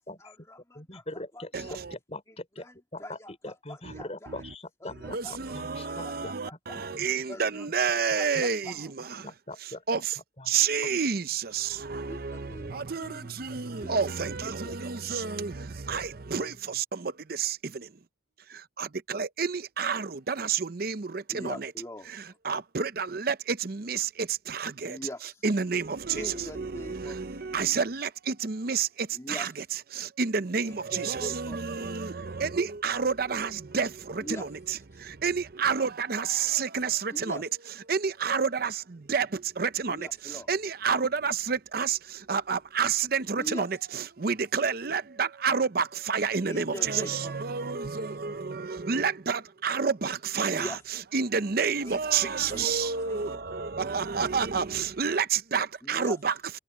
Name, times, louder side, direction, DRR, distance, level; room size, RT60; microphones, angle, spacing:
voice 1, 0.2-1.0 1.3-1.8 2.6-2.7 3.0-4.4 4.8-5.6 5.8-6.9 7.3-8.9 12.1-14.9 21.3-22.4 24.9-25.4 26.1-27.5 29.1-29.5 30.6-31.9 34.2-34.5 34.9-35.1 37.1-37.4 39.9-40.5 43.4-43.7 46.5-47.9 50.5-50.8 51.8-53.4 55.8-56.2, left 1 dB, 15° left, 2.5 m, -43 dB
voice 2, 0.7-2.7 2.9-6.3 6.7-7.1 7.3-7.4 8.1-8.4 9.2-9.8 10.4-10.5 16.7-16.8, left 2 dB, 35° left, 5.0 m, -42 dB
voice 3, 1.5-1.9 3.8-4.0 4.3-4.4 5.0-9.3 9.9-10.2 10.5-17.9 18.5-21.7 22.1-25.0 25.4-29.5 29.9-37.5 37.9-56.6, right 6 dB, 50° right, 0.7 m, -30 dB
head